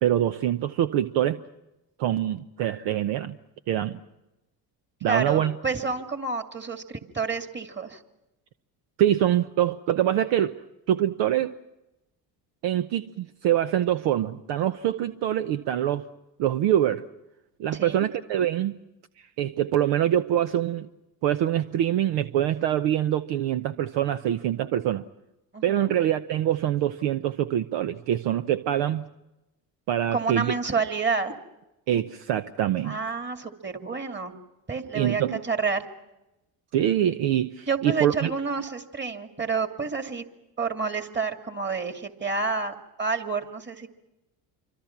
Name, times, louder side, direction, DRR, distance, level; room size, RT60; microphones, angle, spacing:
voice 1, 0.0-1.4 2.0-3.4 3.7-4.0 5.0-5.5 9.0-10.6 10.9-11.6 12.6-16.0 16.4-17.1 17.6-18.8 19.4-20.9 21.2-25.0 25.6-29.0 29.9-30.5 31.9-33.0 34.9-35.4 36.7-38.3, right 11 dB, 60° right, 0.9 m, -24 dB
voice 2, 5.0-8.0 17.7-18.1 25.5-25.9 30.1-31.4 32.8-34.3 34.7-35.8 37.7-40.2 40.6-43.9, right 4 dB, 20° right, 2.5 m, -29 dB
27.0 x 25.0 x 6.0 m
hypercardioid pair, 60°, 49 cm